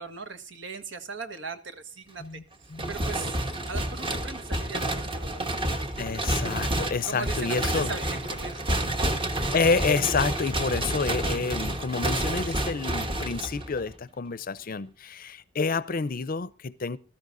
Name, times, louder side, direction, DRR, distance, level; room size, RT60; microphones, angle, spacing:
voice 1, 0.0-2.4 2.9-3.4 3.7-5.4 7.0-8.9, right 4 dB, 70° right, 1.4 m, -39 dB
sound 1, 2.8-14.0, right 1 dB, 30° right, 1.3 m, -29 dB
voice 2, 6.0-7.9 9.5-17.0, left 4 dB, 50° left, 0.6 m, -28 dB
22.0 x 13.5 x 2.6 m
head